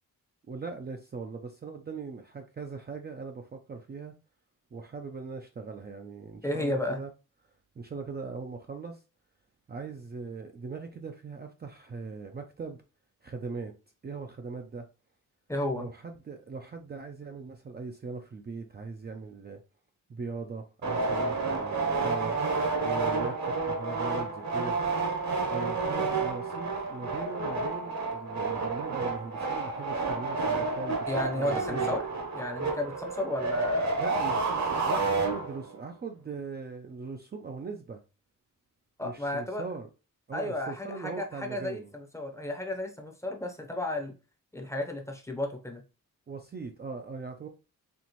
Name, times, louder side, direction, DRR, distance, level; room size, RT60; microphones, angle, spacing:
voice 1, 0.5-4.1 4.7-7.1 7.8-9.0 9.7-12.8 13.2-13.7 14.0-14.9 15.7-19.6 20.1-22.4 22.8-24.8 25.5-32.0 34.0-34.5 34.8-38.0 39.0-39.9 40.3-41.9 44.6-44.7 46.3-47.5, right 4 dB, 30° right, 0.4 m, -40 dB
voice 2, 6.4-7.0 15.5-15.8 31.1-32.0 32.3-33.9 39.0-39.6 40.3-44.1 44.5-45.8, left 1 dB, 10° left, 0.7 m, -33 dB
sound 1, 20.8-35.8, right 3 dB, 55° right, 1.1 m, -30 dB
4.4 x 2.9 x 2.9 m
wide cardioid pair, 145°, 33 cm